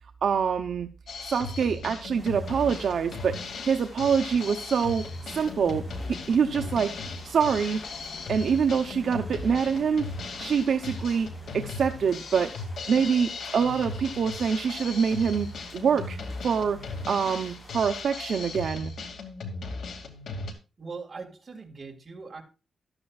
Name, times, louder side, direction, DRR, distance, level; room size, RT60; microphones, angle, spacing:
voice 1, 0.2-0.9 1.2-3.4 3.7-5.8 6.3-7.0 7.2-7.8 8.3-10.1 10.4-11.3 11.5-12.5 12.9-15.5 15.7-16.2 16.4-16.8 17.1-18.9, right 6 dB, 60° right, 5 dB, 0.7 m, -25 dB
Drum kit, 1.1-20.5, left 3 dB, 80° left, 2.4 m, -37 dB
sound 1, 2.1-17.8, equal, 20° left, 6.4 m, -51 dB
sound 2, 5.2-11.9, left 3 dB, 40° left, 5.5 m, -50 dB
voice 2, 20.8-22.4, right 4 dB, 30° right, 1 dB, 2.1 m, -40 dB
14.0 x 12.0 x 2.4 m, 0.30 s
wide cardioid pair, 160°, 0 cm